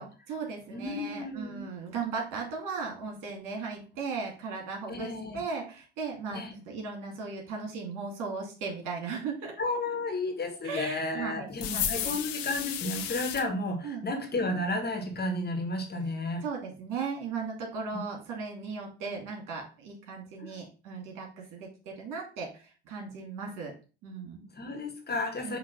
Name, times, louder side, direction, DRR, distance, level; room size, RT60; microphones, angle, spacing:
voice 1, 0.0-9.6 10.6-12.1 13.8-14.0 16.4-23.7 24.0-24.4 25.4-25.6, right 4 dB, 65° right, 1 dB, 2.5 m, -37 dB
voice 2, 0.7-1.7 4.9-5.4 6.3-6.5 9.6-16.4 17.9-18.1 20.4-20.5 24.6-25.6, left 2 dB, 30° left, 5 dB, 1.6 m, -32 dB
sound 1, 11.6-13.4, left 10 dB, 70° left, 1.1 m, -33 dB
5.9 x 3.1 x 5.4 m, 0.35 s
hypercardioid pair, 70°, 34 cm